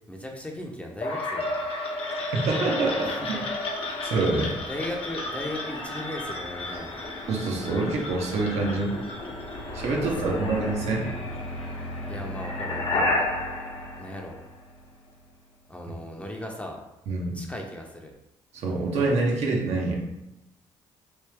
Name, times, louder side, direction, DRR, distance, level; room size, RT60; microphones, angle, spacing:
voice 1, 0.1-1.6 3.0-3.5 4.7-7.1 10.4-10.5 12.1-13.3 14.0-14.4 15.7-16.8 17.3-18.1, left 1 dB, 10° left, 1 dB, 0.7 m, -37 dB
sound 1, 1.0-14.9, left 2 dB, 55° left, 0.8 m, -32 dB
voice 2, 2.3-3.4 4.0-4.5 7.3-9.0 9.7-11.1 17.1-17.4 18.5-20.0, right 3 dB, 70° right, -1 dB, 0.9 m, -26 dB
3.2 x 2.6 x 3.4 m, 0.88 s
supercardioid pair, 65°, 11 cm